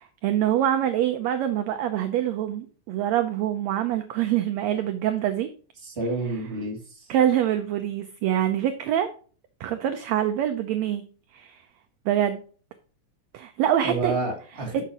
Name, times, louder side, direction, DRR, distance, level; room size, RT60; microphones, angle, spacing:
voice 1, 0.0-5.5 7.1-9.1 9.6-11.0 11.3-11.6 12.1-12.4 13.3-14.1 14.7-14.8, right 11 dB, 70° right, 8 dB, 1.8 m, -25 dB
voice 2, 5.8-7.1 13.8-14.8, right 2 dB, 20° right, 0 dB, 2.6 m, -29 dB
11.0 x 6.8 x 3.0 m, 0.40 s
omnidirectional pair, 3.6 m